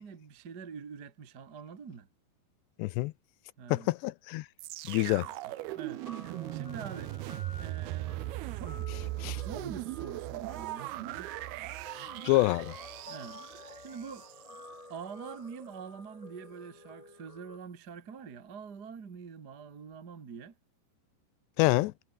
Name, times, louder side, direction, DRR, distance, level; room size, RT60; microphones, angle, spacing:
voice 1, 0.0-2.1 3.6-3.9 5.2-6.0 6.5-7.1 7.6-8.2 8.5-8.9 9.2-11.3 13.0-13.4 13.8-14.3 14.9-20.5, right 6 dB, 40° right, 1.4 m, -45 dB
voice 2, 2.8-3.1 3.7-4.5 4.9-5.3 9.2-9.4 12.2-12.7 21.6-21.9, left 20 dB, 80° left, 2.5 m, -26 dB
sound 1, 4.6-14.7 15.3-15.4, right 18 dB, 85° right, 2.3 m, -39 dB
Guitar, 4.9-17.6, left 1 dB, 10° left, 2.6 m, -50 dB
omnidirectional pair, 5.4 m